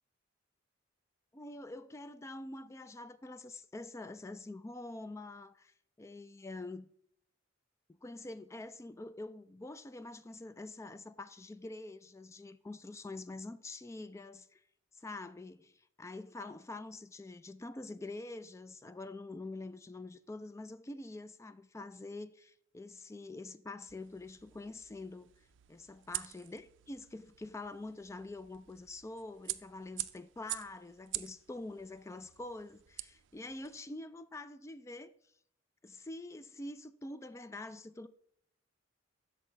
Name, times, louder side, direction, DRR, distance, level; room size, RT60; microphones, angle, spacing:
voice 1, 1.3-6.9 7.9-14.6 15.0-25.3 25.7-35.1 35.8-38.1, left 2 dB, 15° left, 0.3 m, -46 dB
sound 1, 23.9-33.8, right 16 dB, 70° right, 0.4 m, -46 dB
8.4 x 6.3 x 3.2 m
head